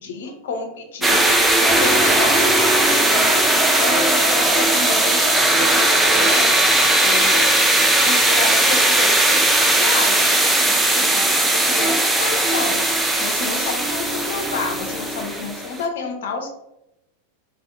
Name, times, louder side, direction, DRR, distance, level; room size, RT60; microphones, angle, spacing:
voice 1, 0.0-1.2 1.6-3.5 3.8-6.5 7.0-7.4 8.0-10.2 10.7-12.8 13.2-16.5, left 4 dB, 55° left, 4 dB, 0.5 m, -29 dB
sound 1, 1.0-15.8, right 1 dB, 10° right, 0.3 m, -18 dB
2.5 x 2.1 x 2.4 m, 0.85 s
figure-of-eight pair, 90°, 0 cm